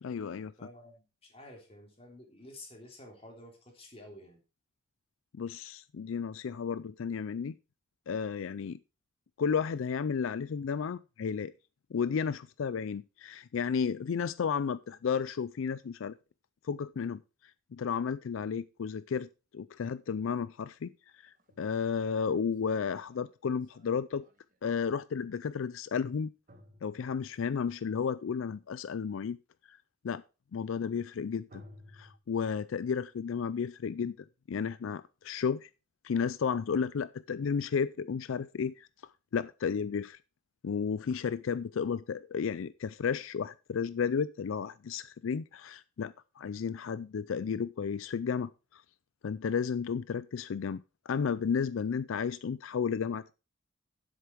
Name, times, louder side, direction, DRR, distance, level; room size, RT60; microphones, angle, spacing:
voice 1, 0.0-0.5 5.3-7.6 8.1-8.8 9.4-11.5 11.9-16.1 16.6-17.2 17.7-19.3 19.5-24.2 24.6-26.3 26.8-29.4 29.7-29.8 30.0-30.2 30.5-31.6 31.9-34.2 34.5-35.7 36.0-38.9 39.3-40.2 40.6-48.8 49.2-53.3, left 6 dB, 80° left, 0.4 m, -33 dB
voice 2, 0.6-4.4, left 1 dB, 30° left, 3.3 m, -51 dB
sound 1, 21.1-24.7 26.5-27.6 31.5-32.2, left 1 dB, 40° right, 1.6 m, -57 dB
10.5 x 7.9 x 4.6 m
head